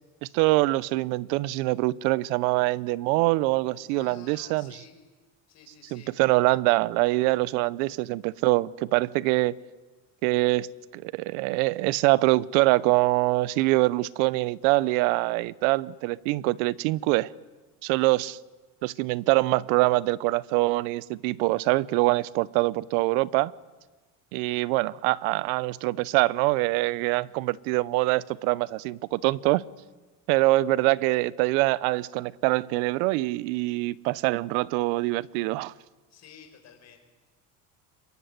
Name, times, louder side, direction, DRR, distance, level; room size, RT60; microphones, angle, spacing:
voice 1, 0.3-4.7 5.9-9.6 10.2-10.7 10.9-17.3 17.8-18.4 18.8-23.5 24.3-29.6 30.3-35.7, right 20 dB, 85° right, 0.9 m, -24 dB
voice 2, 3.9-4.9 5.5-6.1 36.1-37.0, left 7 dB, 40° left, 6.1 m, -51 dB
26.5 x 23.0 x 9.4 m
cardioid pair, 140°, 40 cm